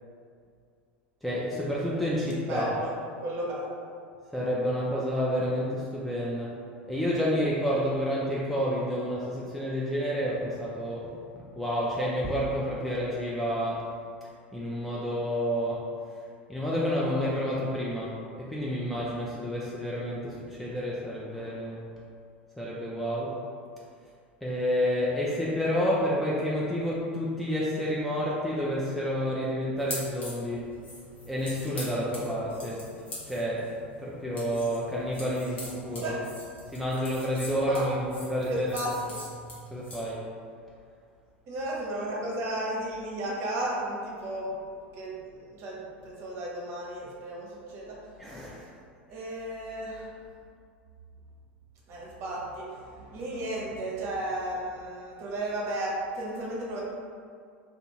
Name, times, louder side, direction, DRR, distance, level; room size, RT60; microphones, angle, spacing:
voice 1, 1.2-2.7 4.3-6.6 6.9-11.2 11.5-13.9 14.5-15.9 16.5-21.8 22.6-23.4 24.4-30.8 31.3-32.8 33.3-33.7 34.0-36.2 36.7-38.8 39.7-40.3 48.2-48.7, equal, ahead, -7 dB, 0.4 m, -29 dB
voice 2, 2.5-2.9 3.2-3.7 36.0-36.2 37.7-37.8 38.5-39.1 41.5-44.5 44.9-48.0 49.1-50.1 51.9-52.7 53.1-56.8, right 1 dB, 45° right, -4 dB, 0.8 m, -34 dB
sound 1, 29.8-40.1, left 1 dB, 75° left, 0.9 m, -43 dB
2.5 x 2.4 x 2.9 m, 2.3 s
figure-of-eight pair, 80°, 6 cm